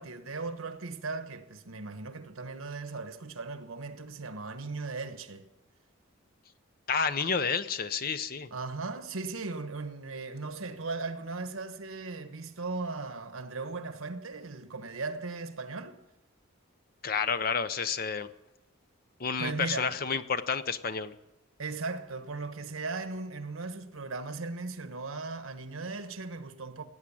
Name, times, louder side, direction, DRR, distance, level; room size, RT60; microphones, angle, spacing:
voice 1, 0.0-5.4 8.5-16.0 19.4-20.0 21.6-26.8, right 3 dB, 85° right, 1.2 m, -37 dB
voice 2, 6.9-8.5 17.0-18.3 19.2-21.1, left 5 dB, 45° left, 0.7 m, -30 dB
17.5 x 8.9 x 8.6 m
head